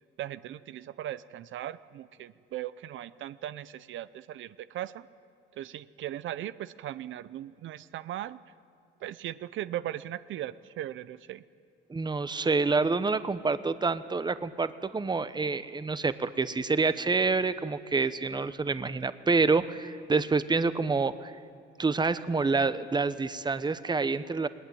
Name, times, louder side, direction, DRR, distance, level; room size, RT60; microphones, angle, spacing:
voice 1, 0.2-5.1 5.6-8.4 9.0-11.4, right 12 dB, 75° right, 15 dB, 0.6 m, -38 dB
voice 2, 11.9-21.3 21.8-24.5, right 4 dB, 20° right, 13 dB, 1.0 m, -27 dB
20.5 x 19.5 x 9.4 m, 2.4 s
cardioid pair, 90°, 20 cm